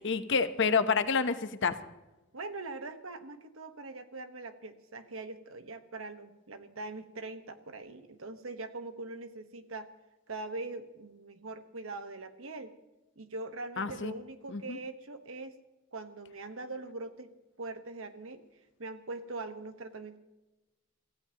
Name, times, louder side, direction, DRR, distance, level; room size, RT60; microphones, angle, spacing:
voice 1, 0.0-1.8 13.8-14.1 14.5-14.8, left 5 dB, 60° left, 10 dB, 0.9 m, -28 dB
voice 2, 2.3-9.9 10.3-12.7 13.2-15.6 15.9-17.3 17.6-18.4 18.8-20.2, right 3 dB, 85° right, 8 dB, 1.3 m, -42 dB
26.0 x 15.5 x 3.0 m, 1.0 s
head